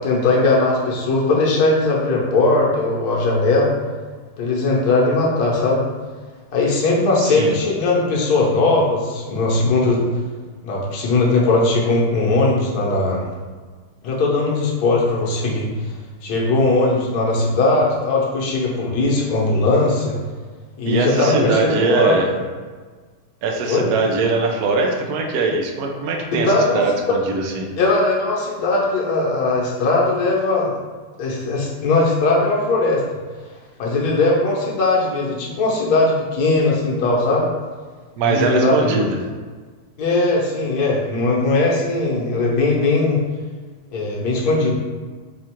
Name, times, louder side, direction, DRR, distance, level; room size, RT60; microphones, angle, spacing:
voice 1, 0.0-3.7 4.4-5.8 6.5-10.1 10.6-13.2 14.0-15.7 16.2-20.2 20.8-22.2 23.7-23.9 26.3-26.8 27.8-30.8 31.2-33.0 33.8-37.5 38.2-39.0 40.0-43.2 43.9-44.8, left 2 dB, 60° left, -3 dB, 1.2 m, -19 dB
voice 2, 7.2-7.6 20.8-22.3 23.4-27.7 38.2-39.2, right 3 dB, 75° right, 2 dB, 0.8 m, -21 dB
4.2 x 2.4 x 4.3 m, 1.5 s
omnidirectional pair, 2.2 m